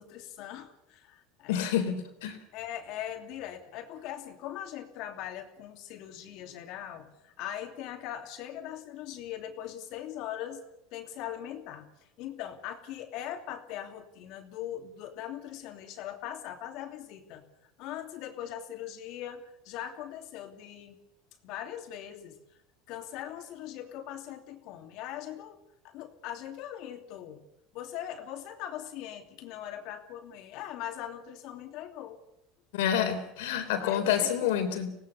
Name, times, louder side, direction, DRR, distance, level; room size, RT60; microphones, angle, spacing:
voice 1, 0.0-1.7 2.5-10.7 10.9-11.9 12.2-21.0 21.4-22.4 22.9-25.6 25.8-27.4 27.7-32.2 33.8-34.5, left 11 dB, 65° left, 6 dB, 2.9 m, -40 dB
voice 2, 1.5-2.4 32.7-35.0, left 9 dB, 85° left, 7 dB, 3.7 m, -28 dB
25.0 x 18.0 x 7.2 m, 0.80 s
supercardioid pair, 110°, 0 cm